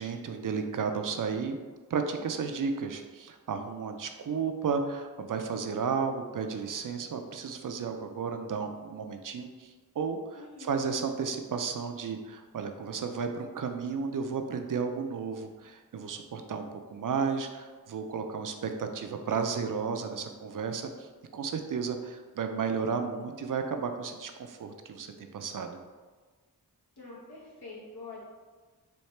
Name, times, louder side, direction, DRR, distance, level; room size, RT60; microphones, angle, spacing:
voice 1, 0.0-1.6 1.9-10.2 10.6-25.8, right 5 dB, 55° right, 6 dB, 0.4 m, -33 dB
voice 2, 10.3-10.8 27.0-28.2, left 3 dB, 85° left, -6 dB, 1.3 m, -45 dB
4.3 x 2.8 x 3.2 m, 1.4 s
wide cardioid pair, 75°, 38 cm